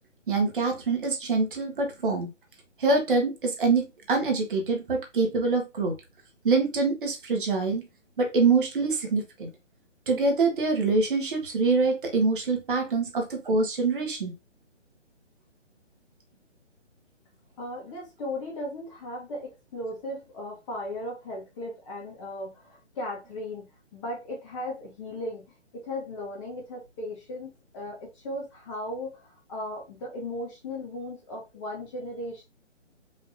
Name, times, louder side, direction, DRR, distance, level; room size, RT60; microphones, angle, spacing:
voice 1, 0.3-2.3 2.8-5.9 6.4-7.9 8.2-9.5 10.1-14.3, right 3 dB, 45° right, 1.5 m, -25 dB
voice 2, 17.6-32.4, left 1 dB, 25° left, 1.8 m, -37 dB
5.3 x 3.5 x 2.7 m
figure-of-eight pair, 145°, 36 cm